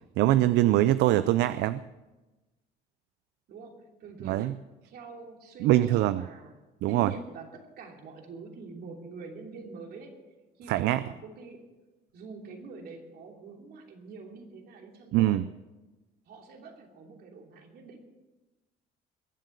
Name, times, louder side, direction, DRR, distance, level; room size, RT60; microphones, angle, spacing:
voice 1, 0.2-1.8 4.2-4.5 5.6-6.3 6.8-7.1 10.7-11.0 15.1-15.5, right 14 dB, 80° right, 14 dB, 0.4 m, -23 dB
voice 2, 3.5-6.5 6.9-10.2 10.6-11.6 12.1-15.4 16.2-18.0, right 4 dB, 65° right, 2 dB, 3.0 m, -45 dB
21.5 x 7.7 x 6.6 m, 1.1 s
cardioid pair, 110°, 17 cm